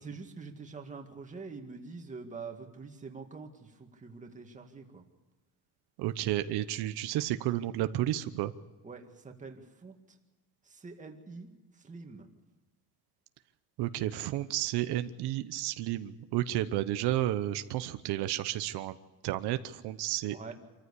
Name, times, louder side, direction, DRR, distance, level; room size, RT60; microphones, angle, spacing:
voice 1, 0.0-5.1 8.8-10.0 10.7-11.5 11.8-12.3 20.3-20.5, right 4 dB, 20° right, 3 dB, 2.0 m, -45 dB
voice 2, 6.0-8.5 13.8-19.0 19.2-20.5, right 14 dB, 90° right, 11 dB, 1.0 m, -32 dB
26.5 x 14.5 x 8.4 m, 1.2 s
cardioid pair, 150°, 38 cm